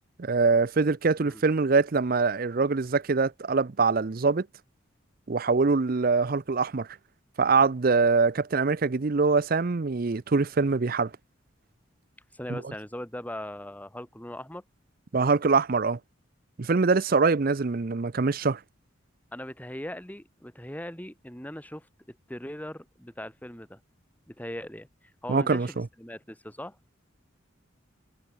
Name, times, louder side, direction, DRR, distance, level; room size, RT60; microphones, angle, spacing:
voice 1, 0.2-4.5 5.3-6.9 7.4-11.1 12.5-12.6 15.1-16.0 16.6-18.6 25.3-25.8, right 4 dB, 45° right, 0.6 m, -24 dB
voice 2, 12.3-14.6 19.3-23.8 24.3-24.9 25.2-26.8, left 1 dB, 10° left, 1.8 m, -39 dB
head